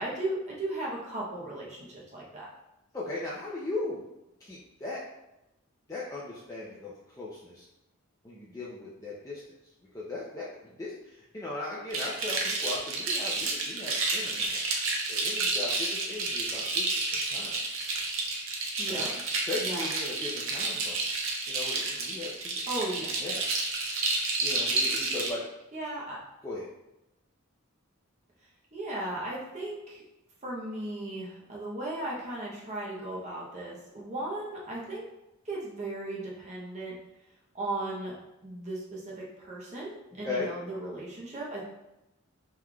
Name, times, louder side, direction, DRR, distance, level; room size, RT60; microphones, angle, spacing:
voice 1, 0.0-2.5 18.8-19.1 19.6-19.9 22.7-23.1 25.7-26.2 28.7-30.0 30.4-35.0 35.4-36.9 37.5-38.1 38.4-41.7, right 1 dB, 30° right, -4 dB, 0.8 m, -36 dB
voice 2, 2.9-4.0 4.4-5.0 5.9-7.7 8.2-9.4 9.9-10.5 10.8-14.7 15.1-17.6 18.9-19.1 19.5-21.0 21.5-22.6 23.2-23.5 24.4-25.5 26.4-26.7 40.2-40.5, left 2 dB, 15° left, -7 dB, 0.4 m, -38 dB
sound 1, 11.9-25.3, right 3 dB, 65° right, 0.7 m, -30 dB
5.5 x 3.1 x 2.3 m, 0.91 s
head